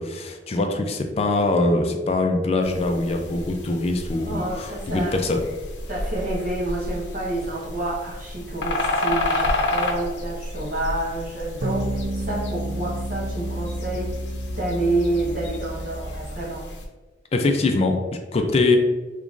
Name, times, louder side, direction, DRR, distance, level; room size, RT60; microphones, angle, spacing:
voice 1, 0.0-5.4 17.3-18.8, left 2 dB, 35° left, 4 dB, 0.4 m, -23 dB
sound 1, 2.6-16.9, left 1 dB, 75° left, 0.6 m, -31 dB
voice 2, 4.3-5.2 5.9-14.1 14.6-16.7, right 2 dB, 50° right, -5 dB, 1.0 m, -28 dB
sound 2, 11.6-16.4, right 1 dB, 75° right, 0.4 m, -30 dB
3.7 x 3.0 x 2.4 m, 1.3 s
head